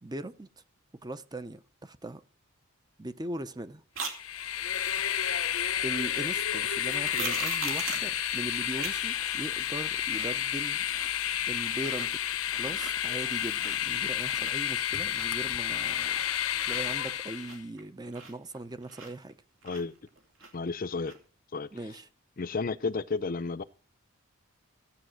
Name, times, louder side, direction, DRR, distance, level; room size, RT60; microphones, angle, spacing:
voice 1, 0.0-0.6 1.0-2.2 3.0-3.8 4.3-4.4 5.8-10.8 11.5-12.2 12.5-16.2 16.7-19.4 21.7-22.1, right 1 dB, 20° right, 0.6 m, -39 dB
sound 1, 3.9-4.2 6.8-8.1 8.8-8.9 9.3-9.4 9.8-10.4 10.7-11.3 11.7-12.1 12.5-12.9 13.3-14.0 14.2-16.3 16.6-19.3 19.6-20.7 21.0-21.2, right 5 dB, 70° right, 2.9 m, -40 dB
Train, 4.1-17.6, left 10 dB, 75° left, 0.8 m, -31 dB
voice 2, 20.5-21.1 21.5-21.7 22.4-23.6, left 4 dB, 40° left, 0.5 m, -32 dB
15.5 x 8.8 x 6.3 m
head